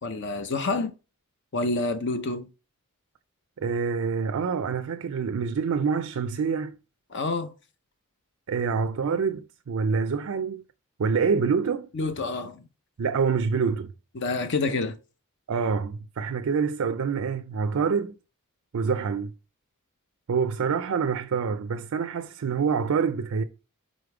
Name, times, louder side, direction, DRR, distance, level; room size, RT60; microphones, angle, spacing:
voice 1, 0.0-0.9 1.5-2.5 7.1-7.5 11.9-12.6 14.2-15.0, left 3 dB, 55° left, 0.6 m, -28 dB
voice 2, 3.6-6.8 8.5-10.6 11.0-11.9 13.0-13.9 15.5-18.1 18.7-19.3 20.3-23.4, right 5 dB, 75° right, 0.4 m, -26 dB
5.0 x 4.2 x 4.8 m
head